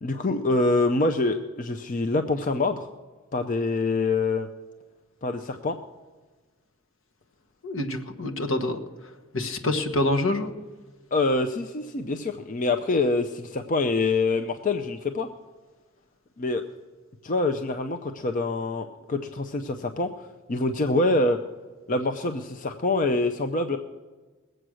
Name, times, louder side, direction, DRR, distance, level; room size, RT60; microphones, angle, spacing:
voice 1, 0.0-2.9 3.3-4.5 5.2-5.8 11.1-15.3 16.4-16.6 17.2-21.4 21.9-23.8, left 2 dB, 40° left, 7 dB, 0.5 m, -25 dB
voice 2, 7.6-8.8 9.3-10.5, left 1 dB, 65° left, 5 dB, 1.3 m, -26 dB
20.0 x 7.9 x 6.3 m, 1.3 s
head